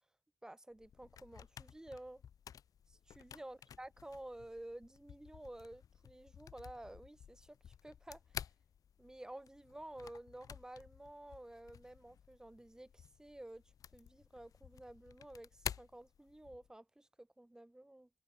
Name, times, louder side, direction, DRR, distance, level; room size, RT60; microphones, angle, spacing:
voice 1, 0.4-2.2 2.9-8.4 9.0-13.6 13.9-18.1, right 1 dB, 10° right, 0.8 m, -52 dB
sound 1, 0.7-16.7, left 8 dB, 75° left, 0.5 m, -52 dB
wide cardioid pair, 110°, 6 cm